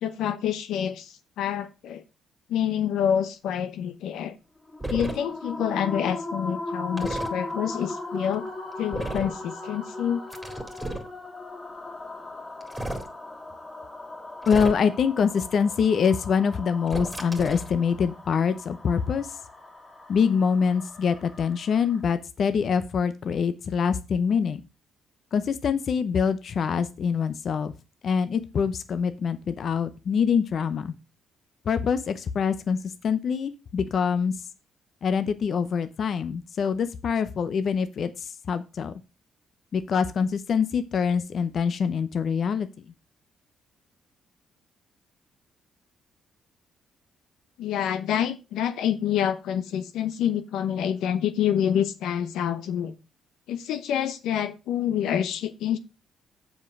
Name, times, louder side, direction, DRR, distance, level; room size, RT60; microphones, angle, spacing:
voice 1, 0.0-2.0 2.5-4.3 4.9-8.5 8.8-10.2 47.6-52.9 53.5-55.8, left 9 dB, 85° left, 0.9 m, -27 dB
sound 1, 4.7-22.0, left 2 dB, 20° left, 2.4 m, -38 dB
sound 2, 4.8-5.2 7.0-7.3 8.9-9.4 10.3-11.1 12.6-13.1 14.4-15.0 16.9-17.7, right 1 dB, 10° right, 2.1 m, -33 dB
voice 2, 14.5-19.4 20.1-24.6 25.3-27.7 28.0-30.9 31.6-34.5 35.0-38.9 39.7-42.9, left 6 dB, 55° left, 0.7 m, -25 dB
7.4 x 5.2 x 5.9 m
cardioid pair, 90°, 0 cm